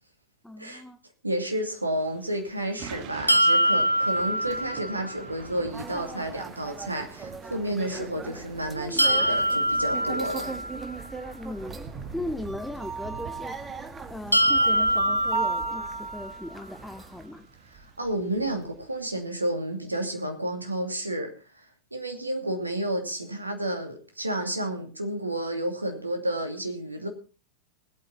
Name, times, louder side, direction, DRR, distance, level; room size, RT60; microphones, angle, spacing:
voice 1, 0.4-1.0 11.3-11.8 12.1-13.6 14.1-17.5, left 1 dB, 5° left, 7 dB, 1.0 m, -37 dB
voice 2, 1.2-10.5 18.0-21.3 21.9-27.1, right 1 dB, 85° right, 4 dB, 2.5 m, -31 dB
Thunder / Rain, 1.9-19.4, right 7 dB, 40° right, 1.6 m, -47 dB
sound 1, 3.3-5.2 9.0-11.0 14.3-16.3, equal, 90° left, 0.8 m, -24 dB
sound 2, 5.7-17.3, right 4 dB, 15° right, 1.4 m, -38 dB
20.0 x 8.8 x 4.3 m, 0.35 s
figure-of-eight pair, 90°, 0 cm